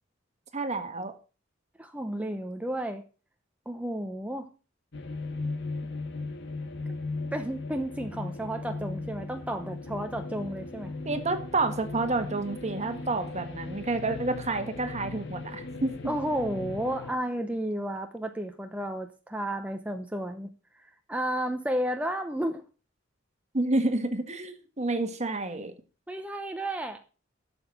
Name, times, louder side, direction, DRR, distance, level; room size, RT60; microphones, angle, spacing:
voice 1, 0.5-1.1 11.0-16.1 23.5-25.7, right 2 dB, 35° right, 9 dB, 1.5 m, -29 dB
voice 2, 1.8-3.0 3.7-4.5 7.3-10.9 16.1-22.6 26.1-27.0, right 1 dB, 5° right, 5 dB, 0.8 m, -32 dB
sound 1, 4.9-17.1, left 3 dB, 65° left, 1.7 m, -37 dB
12.0 x 7.0 x 6.0 m, 0.34 s
head